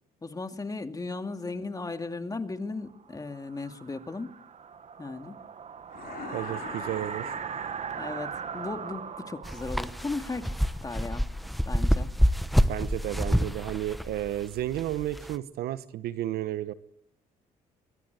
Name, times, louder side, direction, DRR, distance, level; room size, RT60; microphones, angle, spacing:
voice 1, 0.2-4.3 5.0-5.3 8.0-10.6 10.8-11.3 11.7-12.1, left 3 dB, 20° left, 6 dB, 2.4 m, -36 dB
sound 1, 3.0-11.7, right 7 dB, 45° right, 1.5 m, -40 dB
sound 2, 5.9-8.2, left 8 dB, 60° left, 2.8 m, -44 dB
voice 2, 6.3-7.3 12.7-16.7, right 13 dB, 75° right, 14 dB, 1.1 m, -32 dB
sound 3, 9.4-15.4, equal, ahead, 1.2 m, -27 dB
24.0 x 22.5 x 8.1 m, 0.81 s
supercardioid pair, 70°, 16 cm